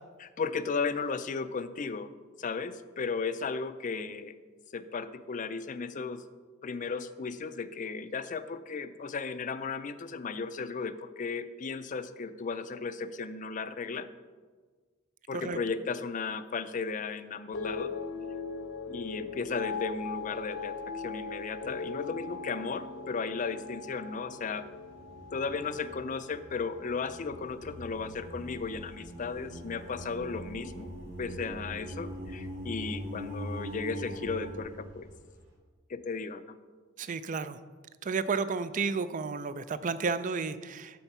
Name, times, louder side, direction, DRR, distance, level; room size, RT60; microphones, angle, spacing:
voice 1, 0.2-2.1 2.4-4.4 4.7-6.2 6.6-14.1 15.3-17.9 18.9-24.7 25.3-30.9 31.2-35.1 35.9-36.4, left 4 dB, 40° left, 12 dB, 0.4 m, -35 dB
sound 1, 17.5-27.9 28.2-28.8, left 4 dB, 70° left, 0.7 m, -40 dB
sound 2, 19.9-20.6 21.0-21.1 24.6-35.4, equal, 70° right, 3.3 m, -42 dB
voice 2, 37.0-37.6 38.0-41.0, right 4 dB, 40° right, 13 dB, 0.4 m, -32 dB
13.0 x 4.5 x 5.5 m, 1.5 s
head